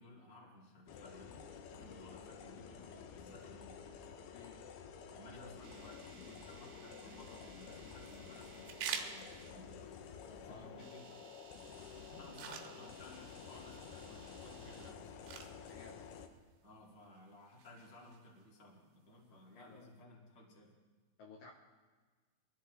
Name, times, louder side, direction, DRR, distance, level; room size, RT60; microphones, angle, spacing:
voice 1, 0.0-3.8 5.1-9.9 10.4-11.2 12.1-15.1 16.6-20.7, left 1 dB, 20° left, -3 dB, 2.0 m, -57 dB
sound 1, 0.9-16.3, left 6 dB, 85° left, 3.0 m, -51 dB
sound 2, 5.1-9.6 10.7-14.9, right 6 dB, 70° right, 1.9 m, -61 dB
sound 3, 7.0-20.0, right 7 dB, 90° right, 3.1 m, -51 dB
voice 2, 10.3-10.9 15.6-16.0 19.3-19.9 21.2-21.5, left 4 dB, 70° left, 0 dB, 2.5 m, -56 dB
23.0 x 14.0 x 3.4 m, 1.4 s
omnidirectional pair, 4.5 m